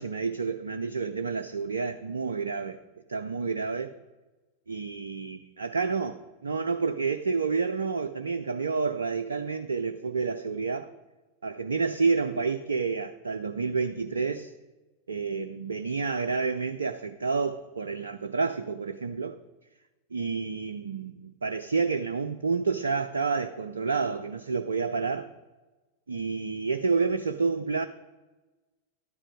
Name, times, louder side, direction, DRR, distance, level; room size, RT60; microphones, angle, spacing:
voice 1, 0.0-2.8 3.1-3.9 4.7-6.2 6.4-10.9 11.4-14.5 15.1-19.4 20.1-25.3 26.1-27.9, right 4 dB, 70° right, 0.5 m, -29 dB
12.5 x 10.0 x 4.9 m
figure-of-eight pair, 90°, 0 cm